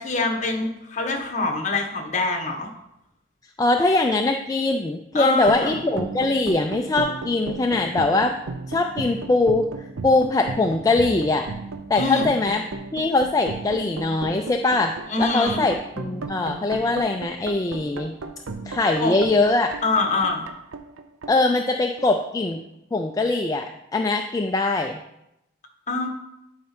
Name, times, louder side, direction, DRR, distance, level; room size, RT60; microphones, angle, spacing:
voice 1, 0.0-2.7 5.1-5.8 11.9-12.3 15.1-15.6 19.0-19.2 19.8-20.4 25.9-26.1, left 3 dB, 35° left, 2 dB, 1.2 m, -24 dB
voice 2, 3.6-8.4 8.7-11.5 11.9-12.6 12.9-18.1 18.7-19.7 21.3-22.6 22.9-25.0, left 2 dB, 15° left, 4 dB, 0.3 m, -22 dB
sound 1, 5.4-22.2, right 3 dB, 80° right, 0.7 m, -35 dB
11.0 x 4.3 x 4.3 m, 0.86 s
head